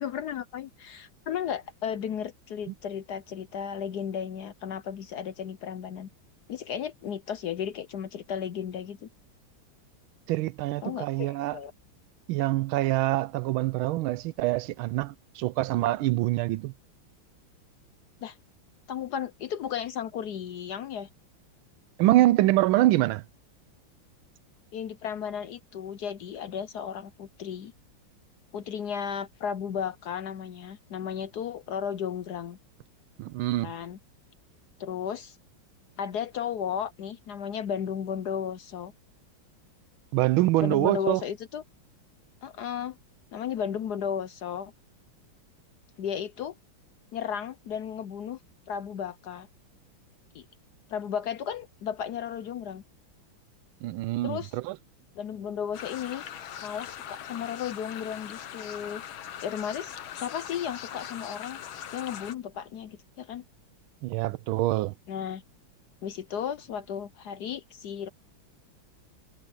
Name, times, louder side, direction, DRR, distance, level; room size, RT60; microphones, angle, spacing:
voice 1, 0.0-6.1 6.5-9.1 10.8-11.7 18.2-18.4 18.9-21.1 24.7-27.7 28.5-32.6 33.6-34.0 34.8-35.4 36.0-38.9 40.6-41.6 42.4-43.0 43.3-44.7 46.0-46.5 47.1-48.4 48.7-49.5 50.3-50.4 50.9-52.8 54.2-54.6 55.2-56.2 56.6-59.0 59.4-61.6 61.9-63.4 65.1-65.4 66.0-68.1, left 8 dB, 65° left, 1.1 m, -34 dB
voice 2, 10.3-11.6 12.3-16.7 22.0-23.2 33.2-33.7 40.1-41.2 53.8-54.7 64.0-64.9, right 16 dB, 85° right, 1.4 m, -25 dB
sound 1, 55.7-62.3, left 9 dB, 80° left, 1.9 m, -41 dB
omnidirectional pair, 2.2 m